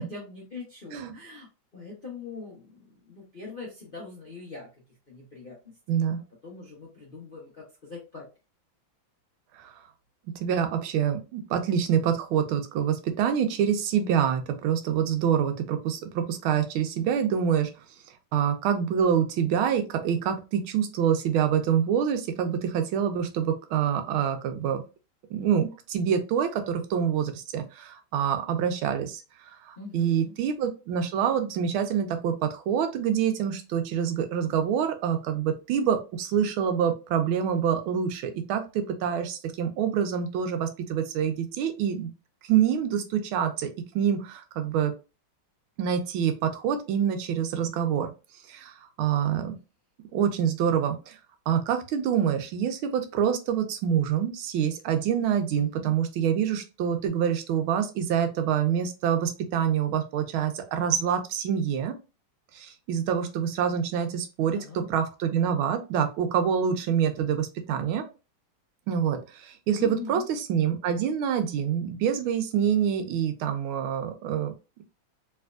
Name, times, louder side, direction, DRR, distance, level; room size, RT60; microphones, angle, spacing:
voice 1, 0.0-1.5 1.7-4.7 5.1-5.7 6.1-8.3 29.8-30.3 55.5-55.9 64.4-64.9 69.8-70.2, left 4 dB, 55° left, -5 dB, 0.6 m, -42 dB
voice 2, 5.9-6.2 9.5-9.7 10.3-17.7 18.3-24.8 25.3-29.2 29.6-42.1 42.4-43.7 43.9-44.9 45.8-48.1 48.5-49.6 50.1-51.2 51.5-62.0 62.5-64.6 64.9-68.0 68.9-74.5, right 8 dB, 90° right, 7 dB, 1.5 m, -26 dB
3.4 x 3.1 x 2.3 m, 0.30 s
omnidirectional pair, 2.2 m